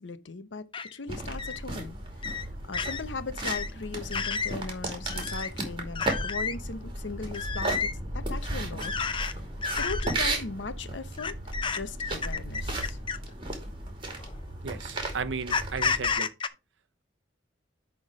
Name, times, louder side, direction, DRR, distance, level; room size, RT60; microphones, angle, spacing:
voice 1, 0.0-2.4 2.7-9.4 9.8-11.4 11.7-13.0, left 4 dB, 75° left, 0.8 m, -38 dB
sound 1, 0.7-0.9 1.4-1.6 2.2-2.4 2.7-3.0 3.4-3.7 4.1-4.5 5.1-5.5 5.9-6.5 7.3-7.9 8.8-9.3 9.6-10.1 11.2-13.3 14.2-14.3 15.5-16.5, left 5 dB, 25° left, 0.6 m, -31 dB
sound 2, 1.1-16.1, right 2 dB, 30° right, 2.5 m, -35 dB
voice 2, 14.6-16.3, right 5 dB, 80° right, 0.7 m, -35 dB
10.5 x 3.7 x 4.8 m
head